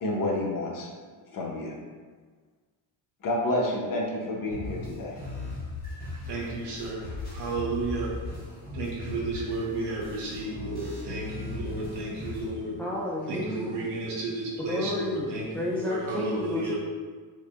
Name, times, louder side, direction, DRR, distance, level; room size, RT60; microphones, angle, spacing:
voice 1, 0.0-0.9 1.3-1.7 3.2-5.1, left 1 dB, 45° left, -1 dB, 0.9 m, -29 dB
sound 1, 4.5-12.5, left 3 dB, 20° left, 1.3 m, -38 dB
voice 2, 6.3-8.1 8.7-12.8 13.3-16.8, right 2 dB, 65° right, -4 dB, 1.2 m, -32 dB
voice 3, 12.8-13.8 14.6-15.3 15.5-16.8, left 1 dB, 5° left, -5 dB, 0.4 m, -31 dB
4.8 x 2.7 x 2.5 m, 1.5 s
cardioid pair, 100°, 45 cm